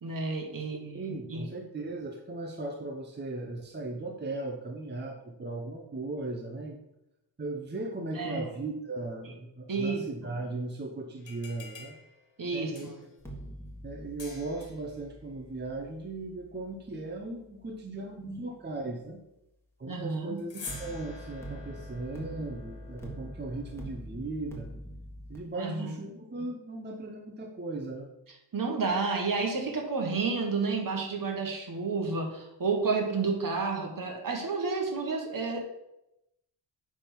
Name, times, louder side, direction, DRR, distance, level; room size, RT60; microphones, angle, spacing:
voice 1, 0.0-1.0 1.3-1.4 8.1-8.4 9.7-10.0 12.4-12.9 19.9-20.4 25.5-26.0 28.5-35.6, right 4 dB, 50° right, 1 dB, 1.5 m, -30 dB
voice 2, 0.8-6.8 7.4-12.0 12.5-12.9 13.8-19.2 19.8-24.7 25.3-28.1, right 2 dB, 25° right, 1 dB, 0.7 m, -37 dB
sound 1, 11.2-13.2 14.2-14.9 20.4-24.0, left 4 dB, 90° left, 2.1 m, -48 dB
sound 2, 13.2-18.3 20.7-25.4, right 1 dB, 5° left, 1.5 m, -45 dB
9.6 x 3.6 x 5.8 m, 0.88 s
wide cardioid pair, 145°, 44 cm